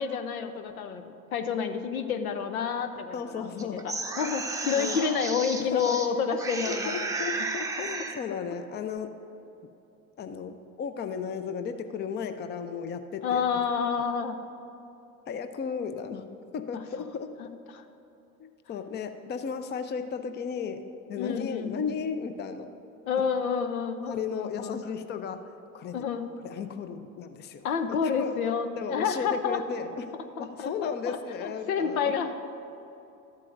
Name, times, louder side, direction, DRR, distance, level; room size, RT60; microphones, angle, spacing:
voice 1, 0.0-3.5 3.8-7.1 13.2-14.4 17.4-17.5 17.7-17.8 21.2-22.0 23.1-24.8 25.9-26.3 27.6-29.6 30.4-32.3, left 6 dB, 75° left, 9 dB, 0.8 m, -29 dB
voice 2, 3.1-3.9 4.2-4.3 4.8-5.0 5.6-6.0 6.7-9.1 10.2-13.4 15.3-16.2 16.5-17.3 18.4-20.8 21.1-22.7 24.1-25.4 25.7-25.9 26.4-28.4 28.8-30.1 30.4-32.1, left 6 dB, 25° left, 9 dB, 0.6 m, -35 dB
sound 1, 3.6-6.1 6.4-8.2, right 3 dB, 10° right, 0.7 m, -33 dB
14.0 x 11.5 x 2.5 m, 2.9 s
figure-of-eight pair, 70°, 43 cm